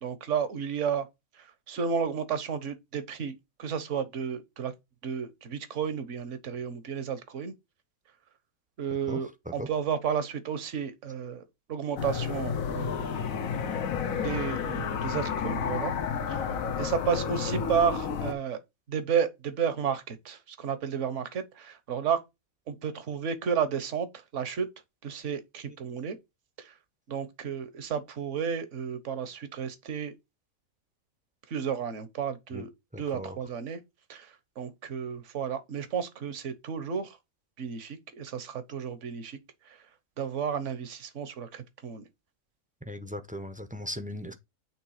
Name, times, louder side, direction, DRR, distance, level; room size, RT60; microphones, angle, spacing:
voice 1, 0.0-1.1 1.3-3.3 3.6-4.7 5.0-7.5 8.8-13.0 14.1-15.9 16.3-18.6 18.9-22.2 22.7-24.7 25.0-26.2 26.6-26.7 27.1-30.1 31.5-32.7 33.0-33.8 34.1-37.2 37.6-39.4 39.6-39.9 40.2-42.0, right 7 dB, 60° right, 1.4 m, -32 dB
sound 1, 12.0-18.3, left 6 dB, 75° left, 1.3 m, -31 dB
voice 2, 32.9-33.4 42.8-44.3, equal, 10° right, 0.6 m, -38 dB
8.7 x 3.4 x 4.9 m
omnidirectional pair, 1.4 m